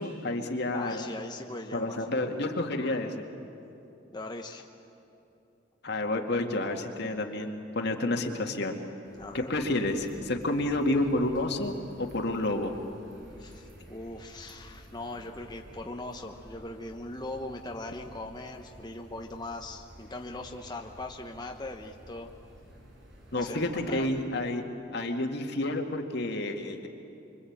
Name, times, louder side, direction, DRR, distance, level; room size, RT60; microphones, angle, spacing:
voice 1, 0.0-1.0 1.7-3.2 5.8-8.8 9.3-12.7 23.3-24.6 24.9-26.9, left 2 dB, 60° left, 3 dB, 2.1 m, -30 dB
voice 2, 0.7-2.1 4.1-4.6 9.2-9.5 13.4-22.3 23.3-24.1, left 2 dB, 20° left, 2 dB, 1.0 m, -40 dB
sound 1, 9.0-24.2, equal, 70° right, 5.0 m, -52 dB
25.5 x 25.0 x 8.8 m, 2.8 s
head